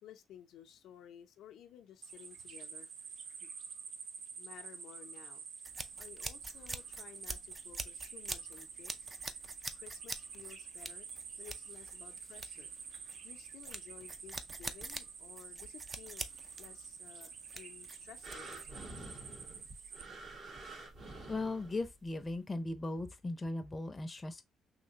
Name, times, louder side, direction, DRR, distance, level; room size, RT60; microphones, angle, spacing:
voice 1, 0.0-3.1 3.4-3.5 4.4-5.4 6.0-9.1 9.7-12.7 13.2-16.3 16.6-19.1, left 10 dB, 85° left, 0.5 m, -55 dB
sound 1, 2.0-20.0, right 5 dB, 70° right, 0.6 m, -49 dB
sound 2, 5.6-18.8, right 2 dB, 25° right, 0.4 m, -45 dB
sound 3, 18.2-22.1 22.8-22.9, right 2 dB, 55° right, 1.4 m, -49 dB
voice 2, 21.3-24.4, left 2 dB, 25° left, 0.6 m, -38 dB
3.2 x 2.8 x 2.8 m
cardioid pair, 90°, 0 cm